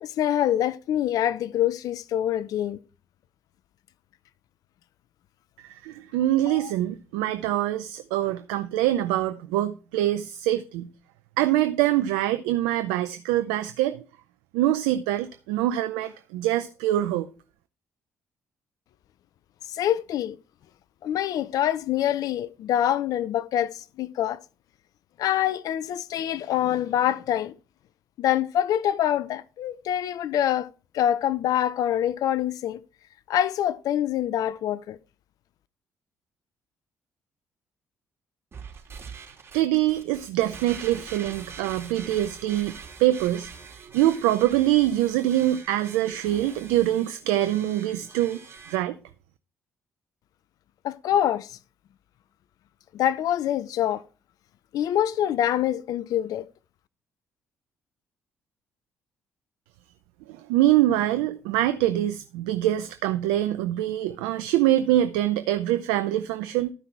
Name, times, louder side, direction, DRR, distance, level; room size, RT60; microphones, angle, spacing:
voice 1, 0.0-2.8 6.5-6.7 19.7-20.4 21.0-24.4 25.2-27.5 28.2-30.7 30.9-32.8 33.3-35.0 50.8-51.6 52.9-54.0 54.7-56.5, left 11 dB, 65° left, 0.6 m, -25 dB
voice 2, 5.8-10.9 11.4-14.0 14.5-17.3 39.5-43.5 43.9-48.4 48.7-48.9 60.3-66.7, right 14 dB, 80° right, 0.6 m, -24 dB
sound 1, 38.5-48.8, right 5 dB, 40° right, 3.7 m, -44 dB
13.0 x 5.8 x 4.6 m
hypercardioid pair, 50°, 7 cm